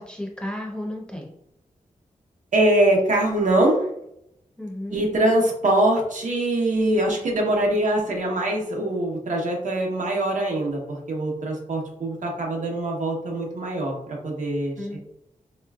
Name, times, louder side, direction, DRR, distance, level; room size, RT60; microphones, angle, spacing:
voice 1, 0.0-1.3 4.6-5.0 14.8-15.0, left 1 dB, 5° left, -1 dB, 0.6 m, -33 dB
voice 2, 2.5-3.9 4.9-15.0, right 1 dB, 65° right, 0 dB, 1.0 m, -23 dB
4.2 x 3.0 x 2.3 m, 0.77 s
wide cardioid pair, 175°, 14 cm